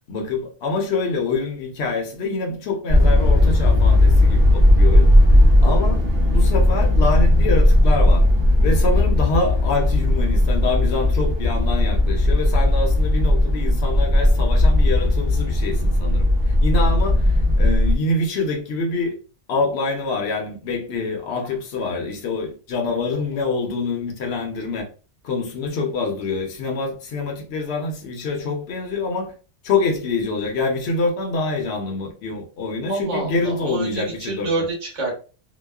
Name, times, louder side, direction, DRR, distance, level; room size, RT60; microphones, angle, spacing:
voice 1, 0.1-5.1 5.6-8.3 8.6-19.2 19.5-24.9 25.2-29.3 29.6-34.5, left 3 dB, 65° left, 0.9 m, -25 dB
sound 1, 2.9-17.9, left 1 dB, 25° right, 0.7 m, -16 dB
voice 2, 32.9-35.1, right 2 dB, 80° right, 1.4 m, -27 dB
2.9 x 2.1 x 2.2 m
omnidirectional pair, 1.2 m